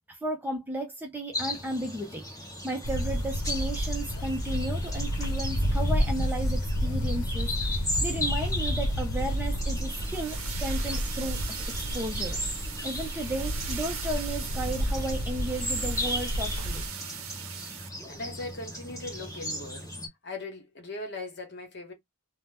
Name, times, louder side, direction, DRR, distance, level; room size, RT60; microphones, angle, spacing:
voice 1, 0.1-2.3 2.6-12.4 12.8-16.9, right 1 dB, 10° right, 0.5 m, -34 dB
sound 1, 1.3-20.1, left 1 dB, 15° left, 1.0 m, -37 dB
sound 2, 2.8-16.9, equal, 85° left, 0.7 m, -30 dB
sound 3, 9.9-17.9, right 8 dB, 65° right, 0.7 m, -40 dB
voice 2, 18.1-19.9 20.2-21.9, left 2 dB, 50° left, 1.1 m, -39 dB
2.8 x 2.1 x 3.3 m
head